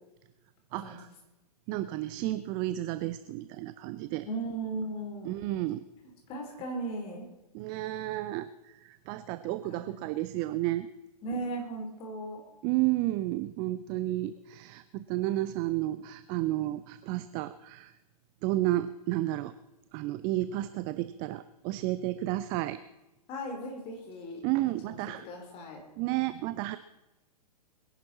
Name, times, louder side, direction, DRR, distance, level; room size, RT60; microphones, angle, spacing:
voice 1, 0.7-1.1 1.7-4.3 5.3-5.8 7.5-10.9 12.6-17.9 18.4-19.5 19.9-22.8 24.4-25.2 26.0-26.8, right 16 dB, 20° right, 13 dB, 0.4 m, -32 dB
voice 2, 4.2-5.4 6.3-7.3 9.7-10.1 11.2-12.4 23.3-24.5 24.8-25.0 25.2-25.8, right 2 dB, 25° left, 2 dB, 3.5 m, -37 dB
22.0 x 11.0 x 4.2 m, 1.0 s
figure-of-eight pair, 115°, 21 cm